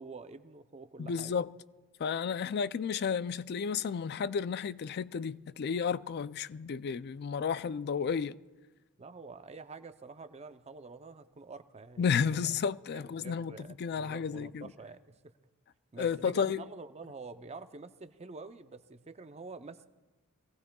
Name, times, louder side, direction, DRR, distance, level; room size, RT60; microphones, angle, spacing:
voice 1, 0.0-1.4 9.0-12.1 12.9-15.3 15.9-19.9, right 3 dB, 30° right, 0.6 m, -47 dB
voice 2, 1.0-1.5 2.0-8.4 12.0-13.5 13.8-14.7 16.0-16.6, left 6 dB, 50° left, 0.4 m, -32 dB
24.0 x 18.0 x 2.3 m
head